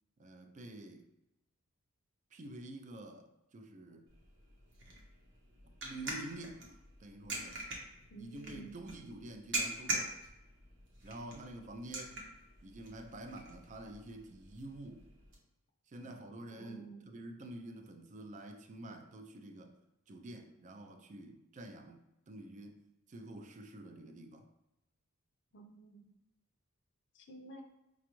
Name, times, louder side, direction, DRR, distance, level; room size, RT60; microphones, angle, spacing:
voice 1, 0.2-1.0 2.3-4.1 5.6-7.6 8.2-10.2 11.0-12.2 12.6-15.1 15.9-19.7 20.1-22.8 23.1-24.5, right 1 dB, 35° right, 6 dB, 0.4 m, -48 dB
sound 1, 4.1-15.4, right 2 dB, 55° right, 0.9 m, -44 dB
voice 2, 8.1-8.8 16.5-17.1 25.5-26.2 27.2-27.6, right 3 dB, 55° left, 2 dB, 0.5 m, -51 dB
5.0 x 2.3 x 3.0 m, 0.93 s
head